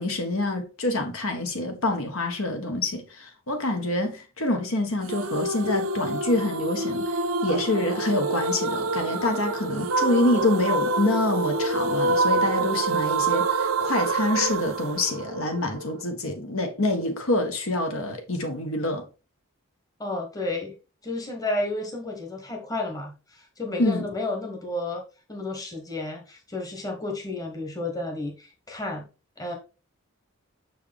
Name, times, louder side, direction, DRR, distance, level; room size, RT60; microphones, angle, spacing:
voice 1, 0.0-19.0 23.8-24.0, left 2 dB, 70° left, 1.4 m, -26 dB
sound 1, 5.1-16.0, right 3 dB, 65° right, 0.6 m, -26 dB
voice 2, 20.0-20.7 21.0-25.0 25.3-29.1 29.4-29.6, left 2 dB, 15° left, 1.2 m, -32 dB
6.1 x 4.7 x 3.4 m
head